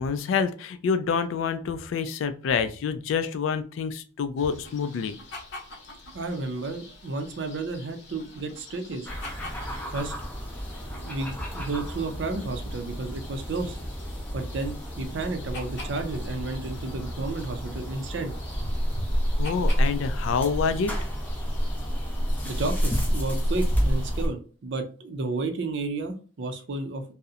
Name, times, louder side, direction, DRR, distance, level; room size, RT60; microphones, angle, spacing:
voice 1, 0.0-5.2 19.4-20.9, left 6 dB, 80° left, 11 dB, 0.3 m, -27 dB
sound 1, 4.4-24.2, left 2 dB, 60° left, 0.7 m, -47 dB
voice 2, 6.1-9.1 9.9-10.1 10.9-13.8 14.3-18.3 18.6-18.7 19.0-19.1 22.4-27.0, right 3 dB, 60° right, 6 dB, 0.4 m, -32 dB
sound 2, 9.1-24.3, equal, 10° left, 0.4 m, -29 dB
2.7 x 2.0 x 2.4 m, 0.39 s
head